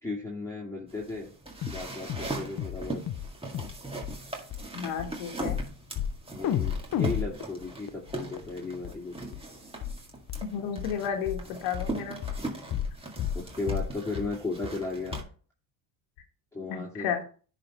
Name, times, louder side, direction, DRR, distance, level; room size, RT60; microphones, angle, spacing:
voice 1, 0.0-1.3 1.7-3.0 6.3-9.4 13.3-15.2 16.5-17.1, left 3 dB, 5° left, -5 dB, 2.5 m, -35 dB
sound 1, 0.9-15.2, right 2 dB, 10° right, 1.9 m, -40 dB
sound 2, 1.6-1.8 2.1-2.3 2.6-2.8 3.1-3.3 3.5-3.8 4.0-4.1 4.5-4.6 5.0-5.1 5.5-5.7 6.0-6.2 6.4-8.5 8.8-8.9 9.3-9.4 9.8-10.0 10.3-10.4 10.8-10.9 11.3-11.4 11.7-11.9 12.2-12.4 12.7-12.9 13.2-13.4 13.7-13.9 14.2-14.3 14.6-14.7 15.1-15.2, left 9 dB, 45° left, 0.9 m, -31 dB
voice 2, 4.7-5.6 10.4-12.2 16.7-17.2, left 7 dB, 80° left, 4 dB, 1.6 m, -32 dB
10.0 x 3.9 x 4.3 m, 0.40 s
supercardioid pair, 85°, 49 cm